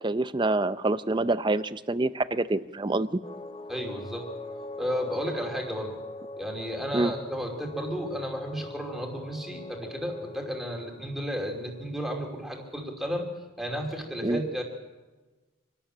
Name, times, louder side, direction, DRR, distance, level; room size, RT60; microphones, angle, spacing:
voice 1, 0.0-3.1 6.9-7.1 14.2-14.4, right 2 dB, 25° right, 13 dB, 0.6 m, -26 dB
sound 1, 3.2-12.2, left 2 dB, 30° left, 0.9 m, -42 dB
voice 2, 3.7-4.3 4.8-6.0 6.4-13.3 13.6-14.6, equal, ahead, 1 dB, 2.7 m, -33 dB
25.5 x 13.0 x 8.8 m, 1.2 s
head